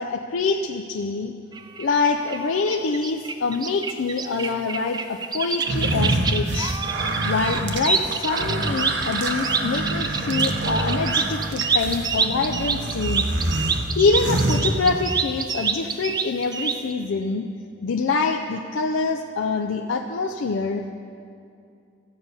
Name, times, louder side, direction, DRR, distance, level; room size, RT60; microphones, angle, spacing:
voice 1, 0.0-1.3 1.8-6.8 7.2-13.2 14.0-17.5 17.8-20.8, left 4 dB, 90° left, 3 dB, 0.5 m, -25 dB
sound 1, 1.5-16.9, right 5 dB, 20° right, 0.3 m, -27 dB
sound 2, 5.6-15.3, right 1 dB, 60° right, 0.9 m, -26 dB
13.5 x 5.5 x 8.1 m, 2.5 s
head